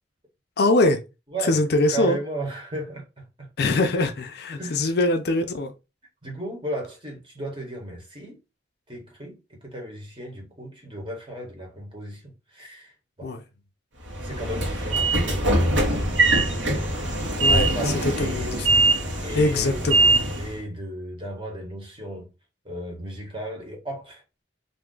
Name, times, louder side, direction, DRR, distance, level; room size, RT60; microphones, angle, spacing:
voice 1, 0.6-1.0 1.4-2.2 3.6-5.7 13.2-13.4 17.4-17.7 18.0-18.9 19.3-20.2, left 2 dB, 55° left, 0.4 m, -23 dB
voice 2, 1.9-3.5 4.5-4.9 6.2-8.4 8.9-12.9 13.2-13.3 14.2-16.0 17.3-19.9 20.4-22.3 22.6-24.2, right 1 dB, 30° right, 1.1 m, -35 dB
Train / Sliding door, 14.1-20.6, right 2 dB, 85° right, 1.0 m, -22 dB
2.6 x 2.3 x 3.7 m
head